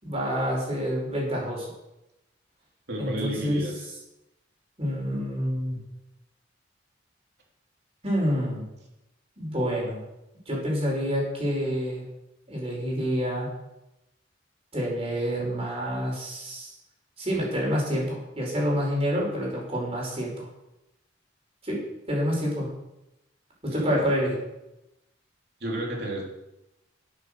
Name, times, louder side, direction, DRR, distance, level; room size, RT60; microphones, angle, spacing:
voice 1, 0.0-1.6 3.0-3.6 4.8-5.8 8.0-8.6 9.4-10.0 10.5-12.0 12.5-13.5 14.7-16.7 17.2-20.5 21.6-21.8 22.1-22.7 23.6-24.4, equal, 30° right, -2 dB, 4.9 m, -27 dB
voice 2, 2.9-3.7 23.7-24.0 25.6-26.2, right 1 dB, 60° right, -2 dB, 3.5 m, -32 dB
11.5 x 8.1 x 6.7 m, 0.92 s
head